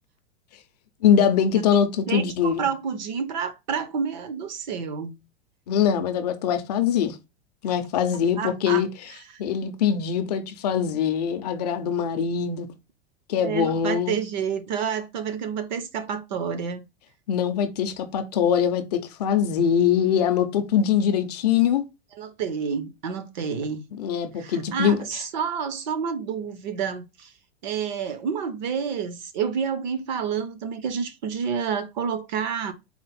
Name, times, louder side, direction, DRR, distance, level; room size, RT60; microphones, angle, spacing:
voice 1, 1.0-2.7 5.7-7.2 7.6-8.9 9.4-12.7 13.3-14.2 17.3-21.9 24.0-25.0, left 8 dB, 40° left, 0.4 m, -22 dB
voice 2, 2.1-5.1 8.4-8.8 13.4-16.8 22.2-23.8 24.4-27.3 27.6-32.7, right 6 dB, 45° right, 0.5 m, -29 dB
4.2 x 2.0 x 4.0 m
supercardioid pair, 175°, 32 cm